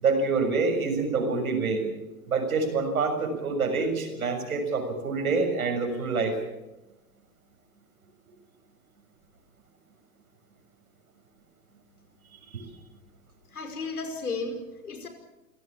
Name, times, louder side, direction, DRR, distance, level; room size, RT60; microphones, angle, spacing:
voice 1, 0.0-1.8 2.3-6.4 12.5-12.6, right 4 dB, 75° right, 5 dB, 6.7 m, -26 dB
voice 2, 13.5-15.1, left 3 dB, 80° left, 6 dB, 5.6 m, -34 dB
28.0 x 17.0 x 7.4 m, 0.98 s
hypercardioid pair, 110°, 43 cm